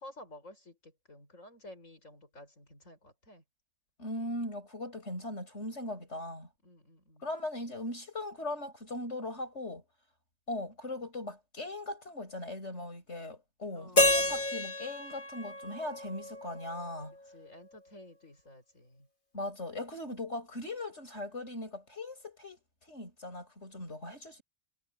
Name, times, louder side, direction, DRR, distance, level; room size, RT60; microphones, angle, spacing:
voice 1, 0.0-3.4 6.6-7.3 13.7-14.4 17.3-19.1, left 1 dB, 75° left, 7.6 m, -52 dB
voice 2, 4.0-6.5 7.2-9.8 10.5-17.1 19.3-22.6 22.9-24.4, left 1 dB, 60° left, 8.3 m, -39 dB
Keyboard (musical), 14.0-16.9, left 1 dB, 40° left, 2.7 m, -30 dB
omnidirectional pair, 1.3 m